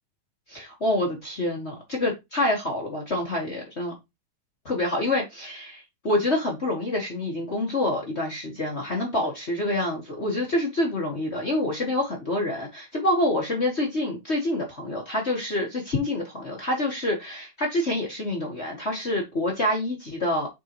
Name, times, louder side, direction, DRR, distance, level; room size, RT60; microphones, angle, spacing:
voice 1, 0.5-3.9 4.6-20.5, left 1 dB, 50° left, 0.7 m, -27 dB
8.2 x 3.8 x 3.0 m
omnidirectional pair, 3.6 m